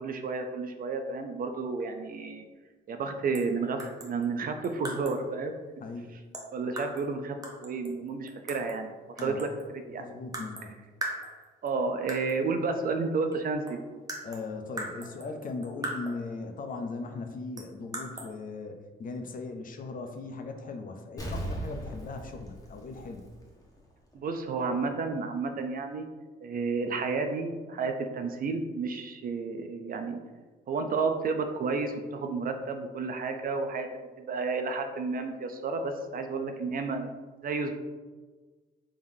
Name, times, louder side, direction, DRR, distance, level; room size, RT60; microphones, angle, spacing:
voice 1, 0.0-2.5 2.9-5.5 6.5-7.4 7.6-10.0 11.6-13.8 24.1-26.1 26.4-30.2 30.7-37.1 37.4-37.7, right 4 dB, 45° right, 6 dB, 0.4 m, -31 dB
sound 1, 3.3-3.5 3.8-5.3 6.3-7.1 7.4-8.8 9.2-9.7 10.3-10.7 11.0-11.7 12.1-12.4 13.3-13.4 13.7-16.3 17.6-18.3, right 1 dB, 20° right, 0.7 m, -40 dB
voice 2, 5.8-6.1 9.2-9.4 9.9-10.7 14.2-23.3, left 3 dB, 45° left, 5 dB, 0.5 m, -38 dB
Explosion, 21.2-23.8 24.1-24.2, right 1 dB, 15° left, 0.9 m, -38 dB
3.6 x 3.3 x 2.6 m, 1.3 s
cardioid pair, 90°, 20 cm